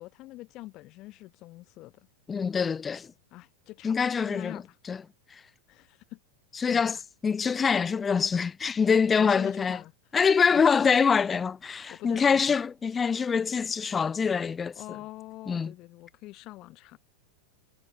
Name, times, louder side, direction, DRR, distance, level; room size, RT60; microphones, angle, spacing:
voice 1, 0.0-2.1 3.3-4.0 4.2-4.8 5.7-6.2 6.6-6.9 9.2-9.9 10.2-10.7 11.7-12.6 13.0-13.1 14.8-17.0, left 18 dB, 40° left, 4.5 m, -44 dB
voice 2, 2.3-3.1 3.8-4.6 4.9-5.0 6.6-7.0 7.2-9.8 10.1-14.7 15.5-15.7, left 6 dB, 20° left, 0.4 m, -24 dB
figure-of-eight pair, 90°, 0 cm